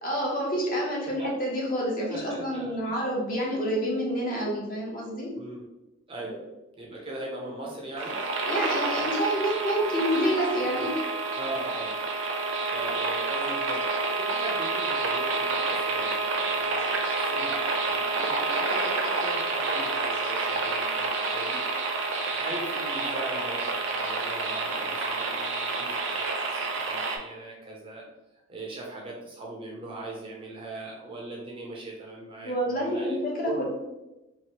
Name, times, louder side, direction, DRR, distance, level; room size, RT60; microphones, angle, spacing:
voice 1, 0.0-5.3 8.4-10.9 32.4-33.6, equal, 45° left, -3 dB, 0.8 m, -28 dB
voice 2, 2.1-3.0 5.4-5.7 6.1-6.4 6.8-8.2 10.6-10.9 11.3-12.0 12.7-21.6 22.2-28.0 28.5-33.6, right 2 dB, 30° right, -2 dB, 0.6 m, -40 dB
sound 1, 8.0-27.2, right 3 dB, 70° right, 0.5 m, -29 dB
2.9 x 2.5 x 2.9 m, 0.99 s
head